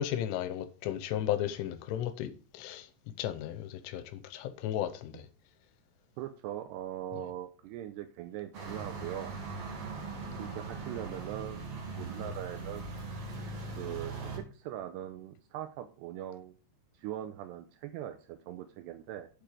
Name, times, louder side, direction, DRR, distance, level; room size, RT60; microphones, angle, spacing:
voice 1, 0.0-2.9 3.2-5.3, left 11 dB, 85° left, 3.3 m, -34 dB
voice 2, 6.2-9.3 10.4-12.9 13.8-16.5 17.0-19.3, right 12 dB, 90° right, 2.4 m, -41 dB
sound 1, 8.5-14.4, right 3 dB, 45° right, 2.5 m, -40 dB
7.6 x 6.9 x 4.9 m
omnidirectional pair, 5.5 m